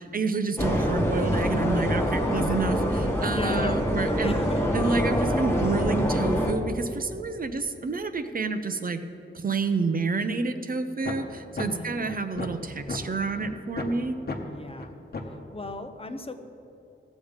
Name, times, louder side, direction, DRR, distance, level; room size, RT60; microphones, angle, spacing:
voice 1, 0.1-4.4 4.7-9.0 9.3-14.2, right 4 dB, 45° right, 9 dB, 0.6 m, -29 dB
sound 1, 0.6-6.5, equal, 10° left, 1.3 m, -25 dB
voice 2, 3.2-4.6 11.6-12.1 14.4-15.0 15.5-16.3, left 2 dB, 25° left, 8 dB, 0.7 m, -36 dB
sound 2, 11.0-11.1 11.6-11.7 12.1-13.0 13.4-13.5 13.8-13.9 14.3-14.4 14.8-14.9 15.1-15.3, left 3 dB, 50° left, 1.1 m, -32 dB
17.5 x 7.2 x 5.1 m, 2.8 s
wide cardioid pair, 130°, 21 cm